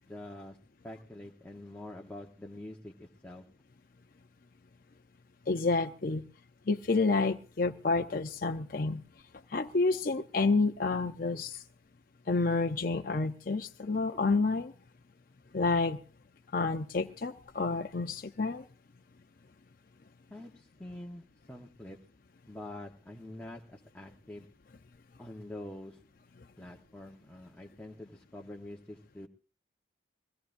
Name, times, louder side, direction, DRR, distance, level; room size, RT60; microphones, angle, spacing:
voice 1, 0.1-0.6 0.8-3.5 20.3-22.0 22.5-24.5 25.2-26.0 26.6-29.3, left 1 dB, 10° left, -1 dB, 1.1 m, -46 dB
voice 2, 5.5-6.3 6.7-9.0 9.5-11.6 12.3-14.7 15.5-16.0 16.5-18.6, left 3 dB, 50° left, 4 dB, 0.6 m, -29 dB
22.5 x 17.0 x 2.6 m, 0.37 s
head